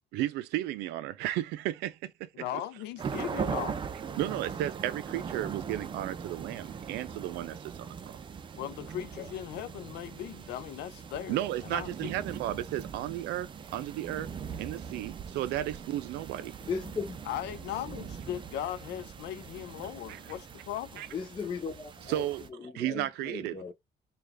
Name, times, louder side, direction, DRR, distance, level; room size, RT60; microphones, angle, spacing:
voice 1, 0.1-2.4 4.2-8.2 11.3-14.3 14.6-16.5 20.1-20.2 21.0-21.1 22.1-22.4 22.7-23.7, right 13 dB, 90° right, 0.5 m, -34 dB
voice 2, 2.3-3.8 8.6-12.1 17.3-21.0, left 11 dB, 80° left, 0.5 m, -38 dB
sound 1, 3.0-22.5, right 6 dB, 30° right, 0.4 m, -41 dB
voice 3, 16.7-17.2 21.1-22.2 22.7-23.7, left 5 dB, 25° left, 0.6 m, -36 dB
3.2 x 2.4 x 3.4 m
cardioid pair, 110°, 17 cm